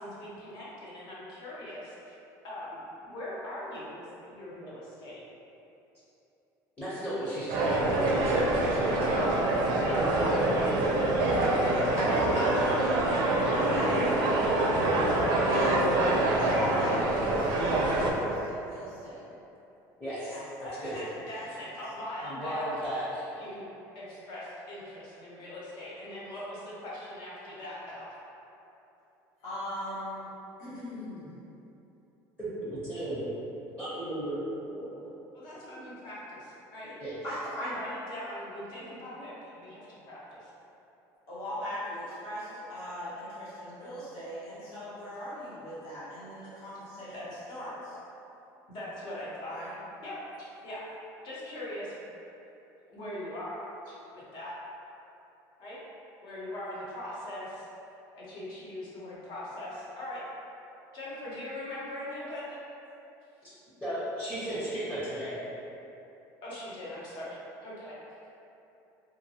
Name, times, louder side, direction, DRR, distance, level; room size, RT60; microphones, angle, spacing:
voice 1, 0.0-2.1 2.4-5.2 9.8-12.0 12.3-13.1 13.5-14.9 20.6-22.6 23.4-23.7 23.9-28.1 35.3-36.9 37.6-40.5 47.1-47.3 48.7-49.6 50.0-50.9 51.2-52.0 52.9-54.5 55.6-55.8 56.2-57.7 58.1-60.2 60.9-62.6 66.4-67.9, left 1 dB, 60° left, -8 dB, 0.9 m, -41 dB
voice 2, 6.8-9.4 20.0-20.4 20.8-20.9 22.2-23.2 32.4-33.3 33.8-34.4 35.0-35.1 37.0-37.1 63.4-63.5 63.8-65.4, right 1 dB, 15° left, -13 dB, 0.8 m, -35 dB
sound 1, 7.5-18.1, right 2 dB, 60° right, 0.4 m, -25 dB
voice 3, 12.3-12.9 13.5-14.0 15.5-15.9 16.4-19.2 20.3-20.4 20.9-21.0 21.5-21.6 29.4-30.3 30.6-31.3 37.2-37.7 41.3-48.0 49.5-49.7, left 1 dB, 80° left, -11 dB, 1.2 m, -38 dB
2.8 x 2.2 x 2.7 m, 2.9 s
cardioid pair, 125°, 8 cm